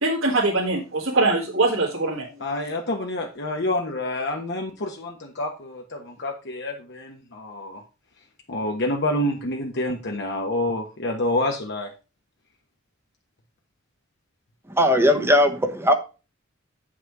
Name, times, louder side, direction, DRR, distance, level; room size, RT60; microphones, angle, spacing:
voice 1, 0.0-2.3, right 2 dB, 70° right, -5 dB, 2.1 m, -22 dB
voice 2, 2.4-7.8 8.5-11.9, left 1 dB, 55° left, 2 dB, 1.1 m, -28 dB
voice 3, 14.8-15.9, left 1 dB, 10° right, 5 dB, 0.9 m, -18 dB
8.1 x 5.9 x 4.7 m, 0.32 s
head